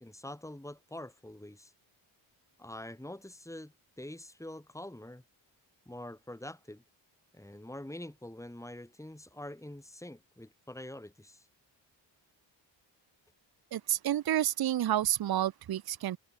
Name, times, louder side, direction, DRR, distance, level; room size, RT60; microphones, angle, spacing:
voice 1, 0.0-1.7 2.6-5.2 5.8-6.8 7.3-11.5, left 1 dB, 5° left, 5.1 m, -45 dB
voice 2, 13.7-16.2, right 12 dB, 50° right, 0.7 m, -29 dB
cardioid pair, 105°, 47 cm